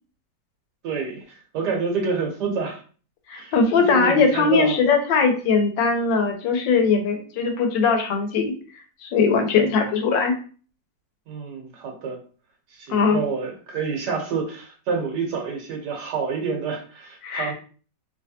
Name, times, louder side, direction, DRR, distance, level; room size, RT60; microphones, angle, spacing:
voice 1, 0.8-2.8 3.3-3.5 3.9-4.8 11.3-12.2 12.7-17.5, right 5 dB, 70° right, 2 dB, 1.5 m, -28 dB
voice 2, 3.3-8.5 9.0-10.3 12.9-13.2 17.2-17.5, left 5 dB, 85° left, 4 dB, 1.5 m, -20 dB
3.3 x 3.0 x 2.7 m, 0.40 s
omnidirectional pair, 1.9 m